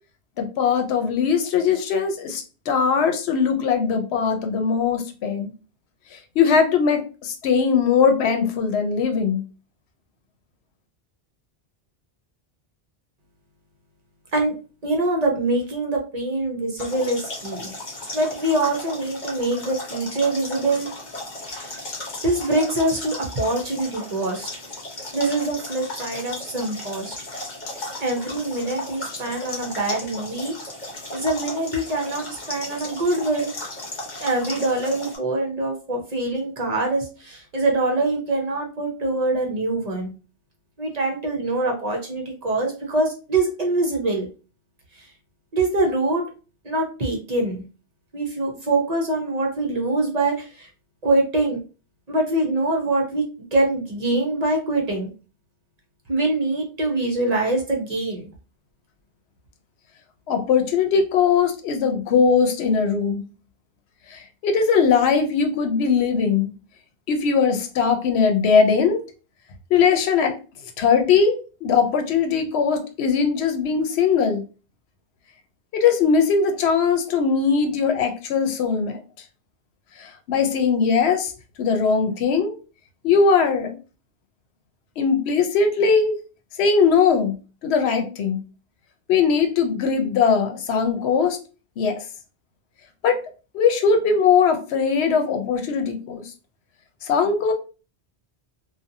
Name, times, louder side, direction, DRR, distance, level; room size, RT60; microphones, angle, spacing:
voice 1, 0.4-5.5 6.1-9.4 60.3-63.2 64.1-66.5 67.1-69.0 69.7-70.4 70.8-74.4 75.7-79.0 80.0-81.3 81.6-82.5 83.0-83.8 85.0-86.1 86.6-87.4 87.6-88.4 89.1-91.4 91.8-92.0 93.0-93.2 93.5-96.2 97.0-97.5, left 6 dB, 85° left, 6 dB, 0.8 m, -20 dB
voice 2, 14.8-17.7 18.1-20.9 21.5-21.9 22.2-24.5 25.1-27.1 28.0-30.5 31.1-33.5 34.2-40.1 40.8-44.3 45.5-46.2 46.6-47.6 48.1-50.7 51.0-51.6 52.1-55.1 56.1-58.3, right 2 dB, 50° right, 1 dB, 0.6 m, -24 dB
sound 1, 16.8-35.2, left 2 dB, 45° left, 0.9 m, -35 dB
2.6 x 2.2 x 2.6 m, 0.35 s
omnidirectional pair, 1.1 m